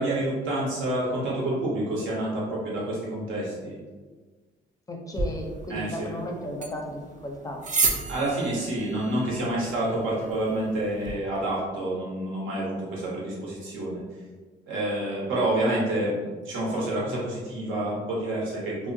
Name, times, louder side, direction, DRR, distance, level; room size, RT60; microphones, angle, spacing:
voice 1, 0.0-3.8 5.7-6.1 8.1-14.0 14.7-18.9, right 1 dB, 80° right, -5 dB, 0.8 m, -28 dB
voice 2, 4.9-7.6, left 1 dB, 15° left, 1 dB, 0.5 m, -34 dB
sound 1, 5.1-11.1, right 3 dB, 40° right, 0.4 m, -33 dB
2.7 x 2.0 x 2.6 m, 1.4 s
cardioid pair, 90°, 20 cm